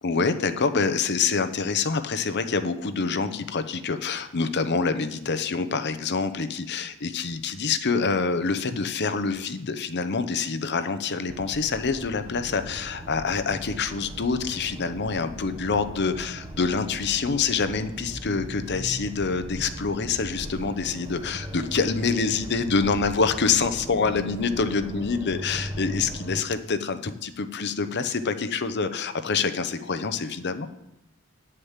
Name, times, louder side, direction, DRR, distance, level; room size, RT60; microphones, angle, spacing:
voice 1, 0.0-30.7, left 4 dB, 50° left, 10 dB, 0.8 m, -26 dB
sound 1, 11.3-26.4, equal, 20° right, 1.0 m, -38 dB
10.0 x 6.7 x 7.3 m, 0.86 s
head